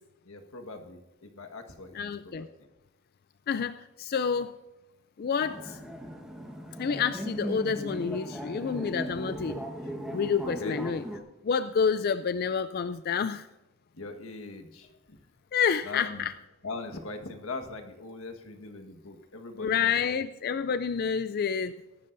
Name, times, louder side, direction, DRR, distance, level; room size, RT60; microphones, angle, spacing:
voice 1, 0.2-2.5 10.4-10.8 14.0-15.2 15.8-16.3 16.6-20.1, left 3 dB, 90° left, 6 dB, 1.5 m, -41 dB
voice 2, 1.9-2.5 3.5-4.6 5.2-5.8 6.8-9.6 10.1-11.0 11.4-13.5 15.5-16.3 19.6-21.7, left 6 dB, 45° left, 12 dB, 0.4 m, -28 dB
sound 1, 5.4-11.2, equal, 5° right, 1.3 m, -38 dB
22.5 x 12.0 x 2.6 m, 1.0 s
head